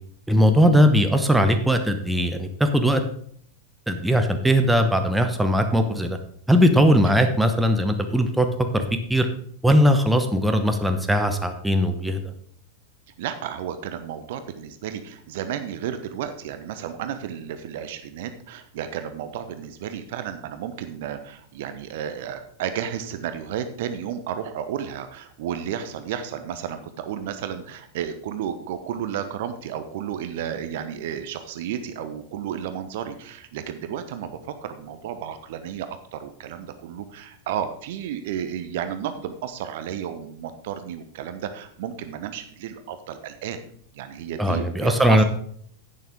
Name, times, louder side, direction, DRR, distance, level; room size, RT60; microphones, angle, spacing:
voice 1, 0.3-3.0 3.9-6.2 6.5-8.5 8.7-8.8 9.1-9.3 9.6-12.2 44.4-45.2, equal, 5° right, 6 dB, 1.0 m, -19 dB
voice 2, 13.2-45.2, right 9 dB, 50° right, 9 dB, 0.9 m, -32 dB
10.5 x 8.9 x 3.6 m, 0.62 s
figure-of-eight pair, 90°, 0 cm